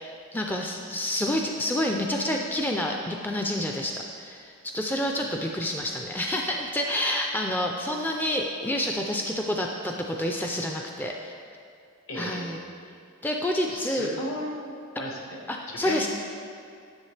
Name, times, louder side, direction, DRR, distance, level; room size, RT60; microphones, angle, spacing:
voice 1, 0.0-11.3 12.2-12.6 13.2-14.1 15.0-15.1 15.5-16.1, left 1 dB, 10° left, 1 dB, 0.3 m, -28 dB
voice 2, 12.1-12.6 13.6-15.4 15.8-16.1, left 1 dB, 70° left, 0 dB, 1.3 m, -35 dB
10.5 x 7.0 x 3.3 m, 2.4 s
head